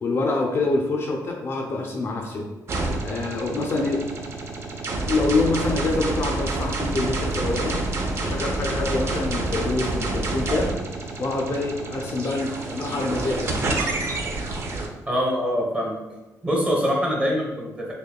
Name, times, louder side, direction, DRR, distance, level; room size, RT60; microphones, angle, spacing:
voice 1, 0.0-2.5 3.0-4.0 5.1-7.8 8.2-10.7 11.2-13.8, left 3 dB, 40° left, 0 dB, 0.4 m, -26 dB
sound 1, 2.7-14.9, right 2 dB, 40° right, 0.5 m, -28 dB
voice 2, 15.1-16.0 16.4-17.9, equal, 20° right, -2 dB, 0.9 m, -24 dB
6.3 x 2.1 x 2.2 m, 1.1 s
wide cardioid pair, 160°, 6 cm